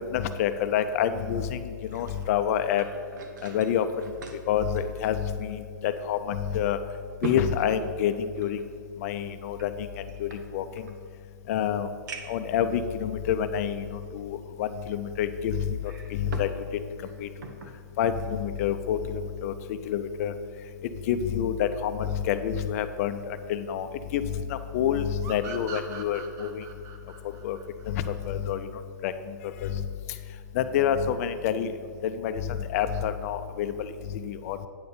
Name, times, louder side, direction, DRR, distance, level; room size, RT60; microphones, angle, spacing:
voice 1, 0.1-1.6 1.9-2.8 3.4-3.9 4.5-6.8 7.2-8.6 9.0-9.9 10.2-10.6 11.5-11.9 12.3-15.8 16.1-16.5 17.2-17.3 18.0-19.5 19.9-20.3 21.1-23.2 23.5-23.9 24.1-24.2 24.5-26.6 27.4-27.6 27.9-28.6 29.0-29.3 29.6-29.8 30.5-31.7 32.0-33.9 34.1-34.6, left 9 dB, 50° left, 11 dB, 0.5 m, -27 dB
sound 1, 1.6-5.7 6.0-6.1 6.7-8.7 9.5-11.0 11.5-11.6 12.1-12.5 13.3-13.4 15.6-16.6 16.9-17.8 18.2-18.4, right 5 dB, 65° right, 1.0 m, -42 dB
sound 2, 25.2-28.6, right 6 dB, 30° right, 0.8 m, -42 dB
8.6 x 4.3 x 6.7 m, 2.1 s
hypercardioid pair, 130°, 11 cm